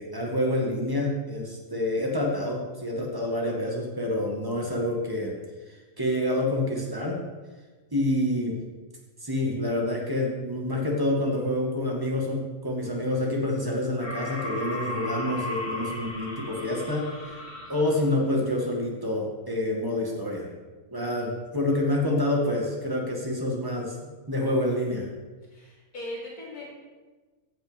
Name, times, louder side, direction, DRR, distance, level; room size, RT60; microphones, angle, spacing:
voice 1, 0.0-5.3 5.7-7.2 7.9-8.6 9.2-17.4 17.7-20.5 20.9-24.0 24.3-25.1, left 1 dB, 15° right, -2 dB, 2.1 m, -27 dB
sound 1, 14.0-18.2, left 1 dB, 30° left, 2.4 m, -36 dB
voice 2, 25.5-26.7, left 1 dB, 85° left, -4 dB, 3.0 m, -39 dB
15.0 x 5.9 x 5.3 m, 1.3 s
omnidirectional pair, 1.5 m